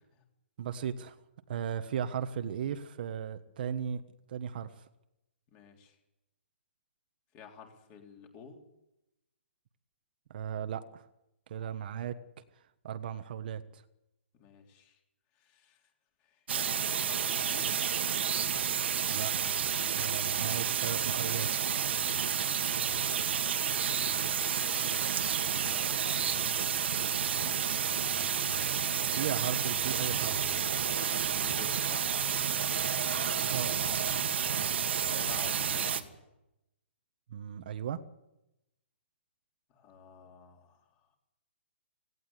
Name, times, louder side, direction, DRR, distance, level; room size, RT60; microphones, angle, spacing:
voice 1, 0.6-1.2 1.5-4.0 4.3-4.7 10.3-11.0 11.5-12.2 12.8-13.8 19.1-19.3 20.0-21.5 29.1-30.4 33.5-33.8 37.3-38.0, right 8 dB, 50° right, 10 dB, 1.3 m, -36 dB
voice 2, 5.5-6.0 7.3-8.6 14.4-15.0 15.4-15.8 16.2-17.7 24.5-25.0 25.7-26.8 27.2-27.6 31.3-32.3 35.1-36.1 39.7-40.8, left 6 dB, 25° left, 3 dB, 3.6 m, -51 dB
sound 1, 16.5-36.0, right 8 dB, 65° right, 1.9 m, -30 dB
17.5 x 17.0 x 9.8 m, 0.90 s
hypercardioid pair, 160°, 7 cm